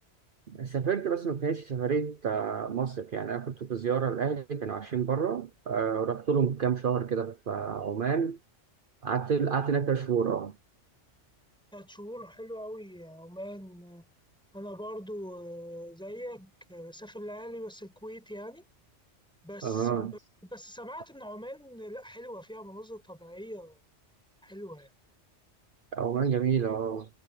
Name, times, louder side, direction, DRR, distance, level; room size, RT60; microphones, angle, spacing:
voice 1, 0.5-8.4 9.0-10.5 19.6-20.1 25.9-27.1, right 7 dB, 50° right, 1.0 m, -29 dB
voice 2, 11.7-14.1 14.5-18.7 19.4-20.1 20.4-23.8 24.4-24.9, equal, 5° left, 5.2 m, -42 dB
omnidirectional pair, 1.2 m